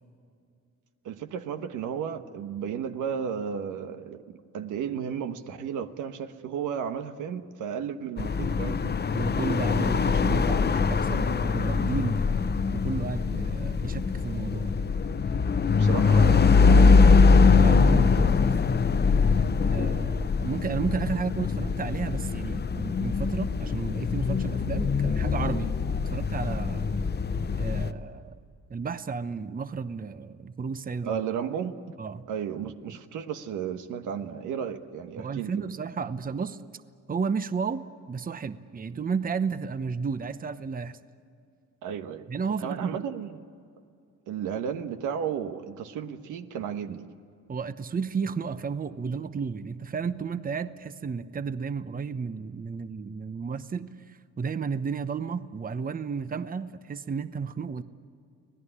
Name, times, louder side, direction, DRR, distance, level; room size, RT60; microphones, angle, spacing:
voice 1, 1.0-9.0 15.7-17.2 31.0-31.7 32.3-35.7 41.8-42.3 42.6-43.4 44.3-47.1, right 8 dB, 85° right, 8 dB, 1.3 m, -33 dB
sound 1, 8.2-27.9, left 4 dB, 35° left, 0.9 m, -23 dB
voice 2, 9.1-12.2 12.7-14.7 17.6-18.5 19.6-26.9 27.6-28.4 28.7-31.2 32.0-32.2 32.9-33.0 35.2-36.6 37.1-41.0 42.3-43.0 47.5-57.8, right 5 dB, 30° right, 12 dB, 0.9 m, -33 dB
26.0 x 18.0 x 9.9 m, 2.4 s
cardioid pair, 90°, 30 cm